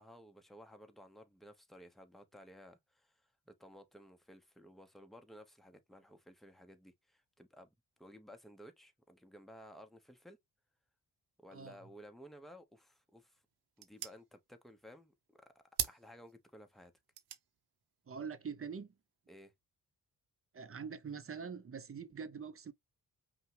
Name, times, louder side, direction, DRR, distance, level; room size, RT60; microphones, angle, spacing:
voice 1, 0.0-7.7 8.0-10.4 11.4-13.4 13.8-16.9 19.3-19.5, equal, ahead, 1.0 m, -56 dB
sound 1, 12.8-19.6, right 10 dB, 80° right, 0.9 m, -46 dB
voice 2, 18.1-18.9 20.5-22.7, right 6 dB, 35° right, 0.8 m, -44 dB
5.5 x 2.4 x 3.3 m
cardioid pair, 85°, 38 cm